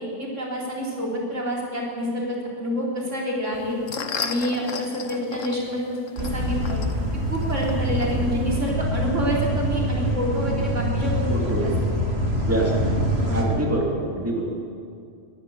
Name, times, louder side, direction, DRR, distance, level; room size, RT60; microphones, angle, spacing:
voice 1, 0.0-3.8 4.2-6.8 7.3-11.7 12.5-12.7 13.3-13.6, equal, 75° right, -3 dB, 4.6 m, -28 dB
sound 1, 3.5-8.7, left 6 dB, 85° left, 1.5 m, -35 dB
sound 2, 6.2-13.4, equal, 55° right, 2.9 m, -25 dB
voice 2, 11.3-11.7 12.4-13.0 13.3-14.6, right 1 dB, 10° right, -1 dB, 2.7 m, -26 dB
24.0 x 12.5 x 8.6 m, 2.3 s
omnidirectional pair, 1.3 m